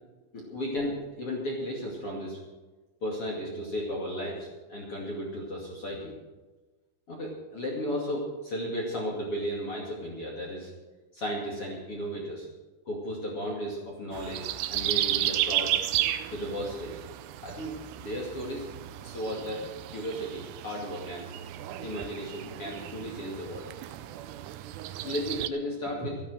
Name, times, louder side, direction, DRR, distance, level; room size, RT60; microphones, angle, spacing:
voice 1, 0.3-2.4 3.0-6.2 7.1-10.7 11.1-12.5 12.9-15.7 16.3-17.0 17.4-18.7 19.0-21.3 21.8-23.7 25.0-26.2, equal, 40° left, -3 dB, 2.7 m, -34 dB
sound 1, 14.1-25.5, right 13 dB, 85° right, 2.8 m, -33 dB
13.5 x 11.5 x 6.4 m, 1.2 s
omnidirectional pair, 4.8 m